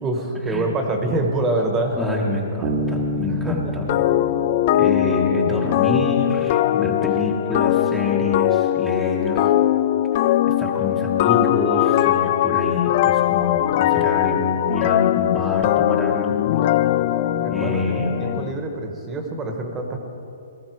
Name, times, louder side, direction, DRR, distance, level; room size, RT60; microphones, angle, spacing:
voice 1, 0.0-2.0 3.3-3.8 17.4-20.0, right 2 dB, 15° right, 3 dB, 1.5 m, -25 dB
voice 2, 1.9-3.9 4.7-9.5 10.2-16.5 17.5-18.5, left 2 dB, ahead, -4 dB, 1.4 m, -27 dB
Bass guitar, 2.6-6.1, equal, 45° right, 1.5 m, -29 dB
sound 1, 3.9-18.5, left 12 dB, 40° left, 0.4 m, -20 dB
18.5 x 14.0 x 4.8 m, 2.6 s
hypercardioid pair, 155°, 0 cm